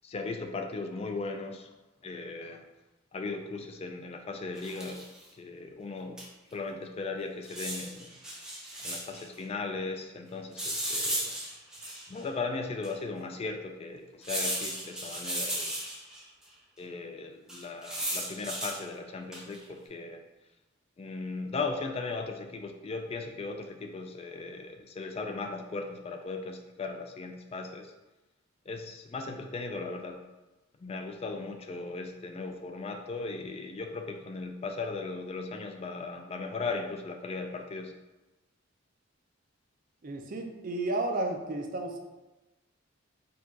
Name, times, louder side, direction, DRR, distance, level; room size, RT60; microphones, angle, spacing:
voice 1, 0.0-1.7 2.0-2.6 3.1-5.1 5.3-6.2 6.5-8.2 8.8-11.3 12.1-15.8 16.8-20.2 21.0-27.9 28.7-30.2 30.8-37.9, left 3 dB, 30° left, 5 dB, 0.3 m, -37 dB
sound 1, 4.6-5.2 6.2-6.3 6.5-6.6 7.4-9.2 10.6-12.2 12.8-12.9 14.2-16.2 17.5-18.8 19.3-19.6, right 1 dB, 5° right, 0.7 m, -35 dB
voice 2, 40.0-42.0, right 2 dB, 45° right, 3 dB, 0.5 m, -32 dB
4.6 x 2.4 x 3.9 m, 1.1 s
head